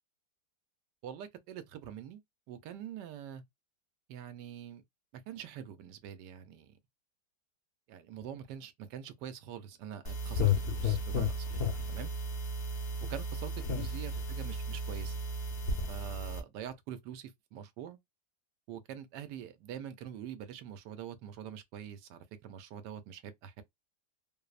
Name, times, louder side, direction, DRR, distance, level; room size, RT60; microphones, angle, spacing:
voice 1, 1.0-2.2 2.5-3.4 4.1-4.8 5.1-6.7 7.9-11.6 11.9-12.1 13.1-15.1 15.9-18.0 18.7-23.6, right 9 dB, 80° right, 1.2 m, -45 dB
sound 1, 10.0-16.4, left 3 dB, 55° left, 0.7 m, -33 dB
3.1 x 2.0 x 2.3 m
omnidirectional pair, 1.8 m